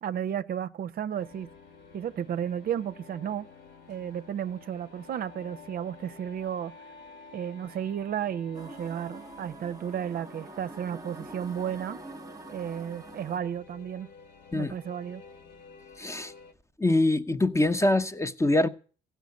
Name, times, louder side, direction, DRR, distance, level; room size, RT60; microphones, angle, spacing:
voice 1, 0.0-1.5 1.9-3.5 3.9-6.7 7.3-12.0 12.5-14.1 14.5-15.2, right 9 dB, 55° right, 0.7 m, -33 dB
sound 1, 1.1-16.5, left 4 dB, 70° left, 2.0 m, -51 dB
sound 2, 8.5-13.4, right 2 dB, 20° right, 1.0 m, -45 dB
voice 2, 16.0-16.3 16.8-18.7, left 2 dB, 15° left, 0.9 m, -24 dB
15.5 x 5.8 x 9.5 m
supercardioid pair, 75°, 18 cm